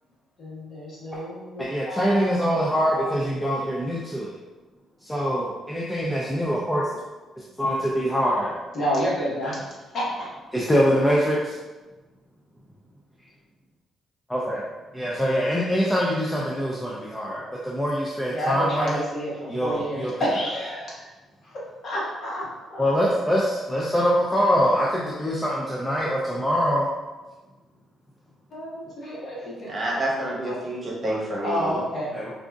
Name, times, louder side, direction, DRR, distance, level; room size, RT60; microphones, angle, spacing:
voice 1, 0.4-3.2 8.7-9.6 9.9-10.3 18.3-21.1 21.4-22.8 28.5-29.8 30.4-30.7 31.4-32.1, equal, 55° left, -6 dB, 1.3 m, -30 dB
voice 2, 1.6-4.4 5.0-7.0 7.4-8.6 10.5-11.6 14.3-14.6 14.9-19.0 19.5-20.1 22.8-26.9 32.1-32.3, equal, 10° left, -5 dB, 0.5 m, -24 dB
voice 3, 29.7-31.7, right 1 dB, 25° right, -4 dB, 1.0 m, -28 dB
4.8 x 2.5 x 2.3 m, 1.2 s
cardioid pair, 90°, 0 cm